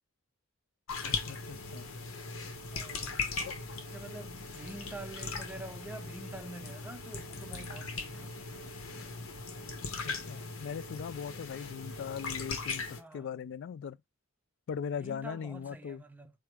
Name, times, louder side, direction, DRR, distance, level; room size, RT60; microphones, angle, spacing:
sound 1, 0.9-13.0, left 4 dB, 85° left, 0.9 m, -39 dB
voice 1, 1.0-1.9 3.4-3.5 9.8-14.0 14.7-16.0, left 7 dB, 60° left, 0.3 m, -40 dB
voice 2, 2.6-3.2 3.8-8.3 12.9-13.3 15.0-16.3, right 1 dB, 10° right, 0.5 m, -47 dB
4.6 x 2.0 x 4.7 m
head